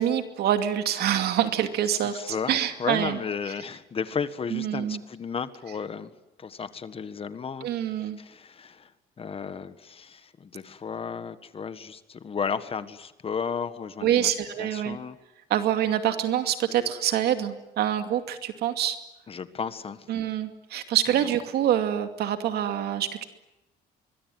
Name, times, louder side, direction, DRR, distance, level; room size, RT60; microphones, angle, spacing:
voice 1, 0.0-3.2 4.5-5.0 7.6-8.2 14.0-15.0 15.5-19.0 20.1-23.2, right 10 dB, 70° right, 7 dB, 2.4 m, -26 dB
voice 2, 2.0-6.1 6.4-7.7 8.0-8.9 9.2-14.3 14.6-15.2 19.3-20.1, left 6 dB, 35° left, 12 dB, 1.6 m, -34 dB
24.5 x 21.5 x 9.5 m, 0.96 s
cardioid pair, 110°, 17 cm